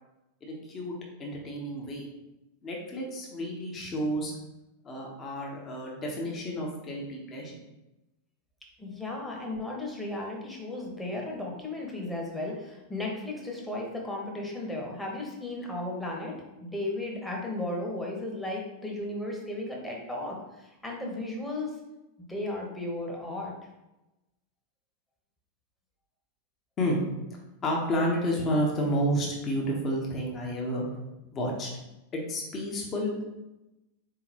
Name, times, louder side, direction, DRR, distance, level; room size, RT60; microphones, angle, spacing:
voice 1, 0.4-2.1 2.6-4.3 4.8-7.6 26.8-27.0 27.6-30.9 31.3-31.7 32.1-33.2, equal, 25° left, -2 dB, 1.1 m, -30 dB
voice 2, 8.8-21.7 22.3-23.5, left 2 dB, 5° left, -2 dB, 1.1 m, -35 dB
4.2 x 3.8 x 2.9 m, 0.97 s
figure-of-eight pair, 90°, 0 cm